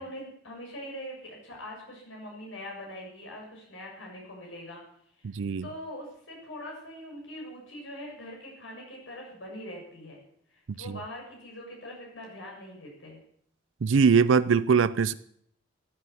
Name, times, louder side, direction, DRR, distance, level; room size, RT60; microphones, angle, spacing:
voice 1, 0.0-4.8 5.2-5.3 5.6-10.2 10.5-13.2, left 1 dB, 90° left, 7.1 m, -42 dB
voice 2, 5.2-5.7 10.7-11.0 13.8-15.1, right 5 dB, 80° right, 0.5 m, -22 dB
15.0 x 9.7 x 8.0 m
head